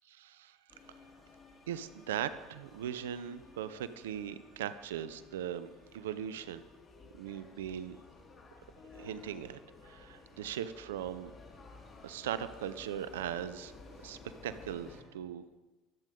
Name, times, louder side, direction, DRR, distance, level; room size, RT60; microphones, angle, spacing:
voice 1, 0.1-0.6 1.7-6.6 7.2-8.0 8.9-11.3 12.0-13.7 14.0-15.5, right 10 dB, 85° right, 14 dB, 0.6 m, -39 dB
sound 1, 0.7-15.0, left 3 dB, 35° left, 4.7 m, -55 dB
24.5 x 9.3 x 3.8 m, 1.2 s
hypercardioid pair, 80°, 0 cm